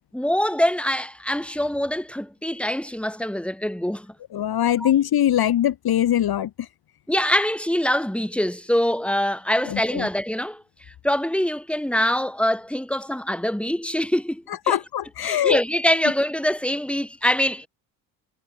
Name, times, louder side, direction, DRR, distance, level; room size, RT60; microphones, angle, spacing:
voice 1, 0.1-4.1 4.8-4.9 7.1-10.6 11.0-14.8 15.2-17.7, equal, 5° left, 5.3 m, -24 dB
voice 2, 4.3-6.7 9.7-10.1 14.7-15.6, left 11 dB, 55° left, 2.8 m, -22 dB
hypercardioid pair, 65°, 44 cm